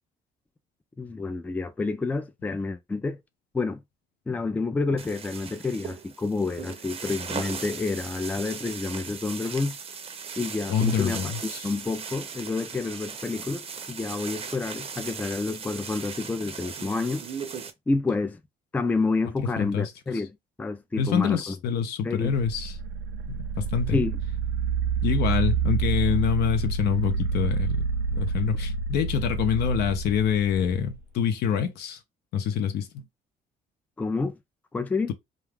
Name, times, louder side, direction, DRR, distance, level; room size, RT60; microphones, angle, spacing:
voice 1, 1.0-3.2 3.5-3.8 4.3-9.8 10.4-17.2 17.9-18.4 18.7-21.6 22.0-22.3 23.9-24.2 34.0-34.4 34.7-35.1, left 3 dB, 10° left, 0.3 m, -29 dB
sound 1, 5.0-17.7, right 6 dB, 35° right, 0.6 m, -38 dB
voice 2, 10.7-11.7 19.6-19.9 21.0-22.7 23.3-24.0 25.0-32.0 32.3-33.0, left 7 dB, 75° left, 0.7 m, -26 dB
sound 2, 22.2-31.0, right 5 dB, 85° right, 0.4 m, -28 dB
2.4 x 2.3 x 3.3 m
cardioid pair, 110°, 17 cm